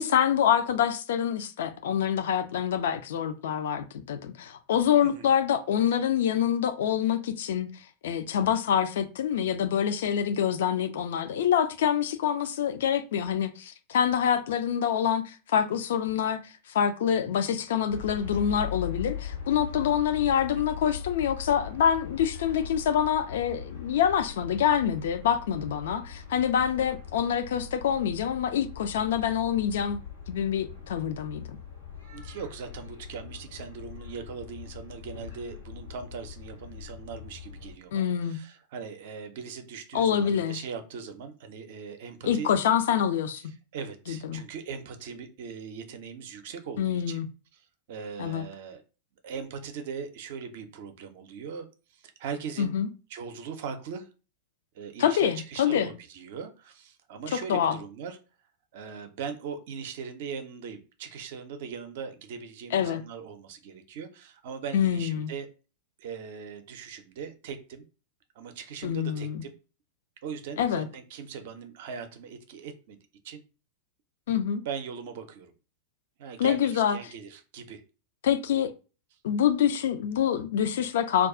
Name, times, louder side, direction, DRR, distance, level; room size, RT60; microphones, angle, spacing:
voice 1, 0.0-7.7 8.0-30.0 30.3-31.6 37.9-38.4 39.9-40.6 42.2-43.4 44.1-44.4 46.8-47.3 48.2-48.4 52.6-52.9 55.0-55.9 57.3-57.8 62.7-63.0 64.7-65.3 68.8-69.4 70.6-70.9 74.3-74.6 76.4-77.0 78.2-78.7 79.2-81.3, left 9 dB, 60° left, 0.4 m, -26 dB
sound 1, 17.9-37.7, left 7 dB, 85° left, 1.0 m, -41 dB
voice 2, 32.1-42.5 43.7-47.2 47.9-48.8 49.2-51.7 51.9-52.8 53.1-54.1 54.7-58.2 58.7-65.5 66.0-67.9 68.3-69.5 70.2-73.0 73.2-73.4 74.6-75.5 76.2-77.8, right 6 dB, 50° right, 0.5 m, -40 dB
2.3 x 2.3 x 3.6 m
figure-of-eight pair, 90°, 0 cm